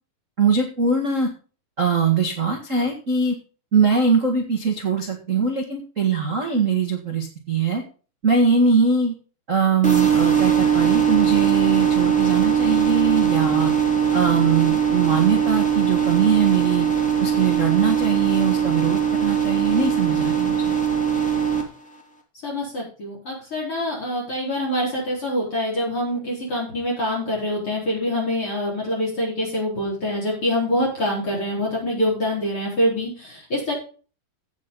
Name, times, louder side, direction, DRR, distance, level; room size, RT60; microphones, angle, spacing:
voice 1, 0.4-1.3 1.8-3.3 3.7-7.8 8.2-9.1 9.5-13.7 14.1-16.9 17.2-20.7, right 5 dB, 65° right, 1 dB, 0.7 m, -21 dB
sound 1, 9.8-21.6, right 8 dB, 5° left, 1.9 m, -20 dB
voice 2, 22.4-33.7, left 1 dB, 35° left, -4 dB, 4.8 m, -25 dB
16.0 x 6.2 x 3.9 m, 0.37 s
omnidirectional pair, 4.6 m